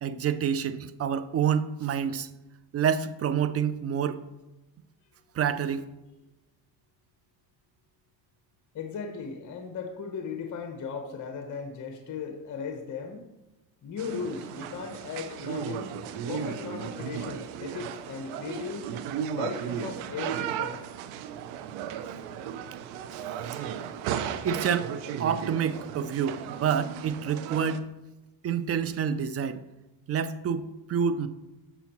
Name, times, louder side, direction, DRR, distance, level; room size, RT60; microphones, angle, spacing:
voice 1, 0.0-2.3 2.7-4.2 5.3-5.8 23.1-23.3 24.4-24.9 25.2-27.8 28.4-29.6 30.1-31.3, right 7 dB, 35° right, 14 dB, 0.4 m, -28 dB
voice 2, 8.7-13.3 13.8-15.9 16.3-18.9 19.3-20.8, left 6 dB, 40° left, 5 dB, 0.9 m, -37 dB
sound 1, 14.0-27.8, right 9 dB, 85° right, 0.7 m, -35 dB
7.1 x 6.8 x 3.0 m, 1.0 s
supercardioid pair, 90°, 48 cm